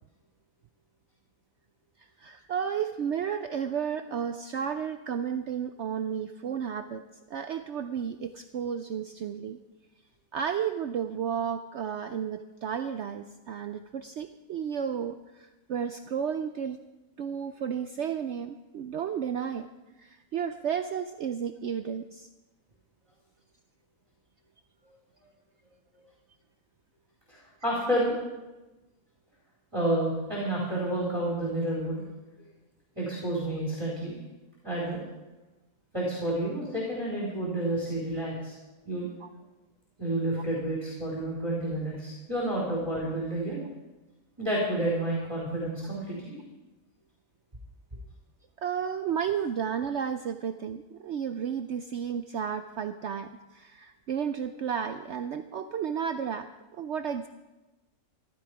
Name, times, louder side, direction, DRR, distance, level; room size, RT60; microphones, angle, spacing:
voice 1, 2.2-7.0 7.3-9.6 10.3-16.8 17.2-19.7 20.0-22.3 39.2-39.3 48.6-57.3, right 7 dB, 65° right, 9 dB, 0.7 m, -32 dB
voice 2, 27.3-28.1 29.7-32.0 33.0-34.2 34.6-35.0 35.9-38.5 38.8-39.1 40.0-43.6 44.4-46.4, right 1 dB, 20° right, -5 dB, 4.1 m, -30 dB
15.0 x 12.5 x 4.9 m, 1.1 s
omnidirectional pair, 1.6 m